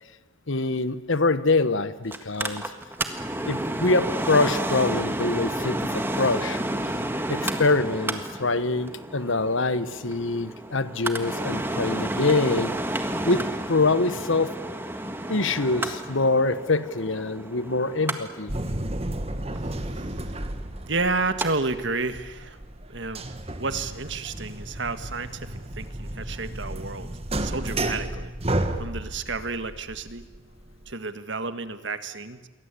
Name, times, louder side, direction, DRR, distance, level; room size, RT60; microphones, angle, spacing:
voice 1, 0.5-2.6 3.4-6.6 7.3-12.7 13.2-14.5 15.3-18.5, left 3 dB, 65° left, 14 dB, 1.3 m, -24 dB
Mechanical fan, 2.1-21.5 21.8-21.9, right 1 dB, 10° right, 1.7 m, -31 dB
sound 1, 18.5-30.9, right 1 dB, 30° right, 1.6 m, -32 dB
voice 2, 19.6-20.4 20.8-22.6 22.9-27.1 27.4-28.3 28.8-30.2 30.8-32.5, right 3 dB, 55° right, 11 dB, 1.7 m, -31 dB
28.5 x 23.0 x 8.4 m, 1.2 s
head